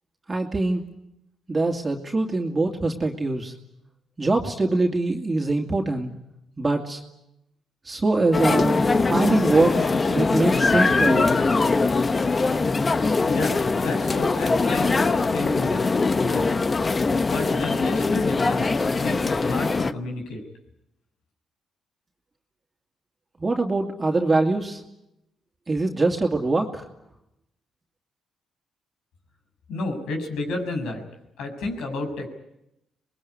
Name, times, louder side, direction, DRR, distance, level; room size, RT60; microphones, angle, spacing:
voice 1, 0.3-0.8 1.5-3.5 4.2-6.1 6.6-7.0 7.8-11.4 23.4-24.8 25.7-26.9, right 2 dB, 25° right, 1 dB, 2.6 m, -23 dB
sound 1, 8.3-19.9, left 3 dB, 30° left, 1.0 m, -22 dB
voice 2, 13.2-15.8 16.1-16.6 17.2-20.4 29.7-31.0 31.4-32.3, left 2 dB, 85° left, 3 dB, 6.7 m, -31 dB
26.5 x 21.0 x 9.7 m, 0.86 s
cardioid pair, 90°, 0 cm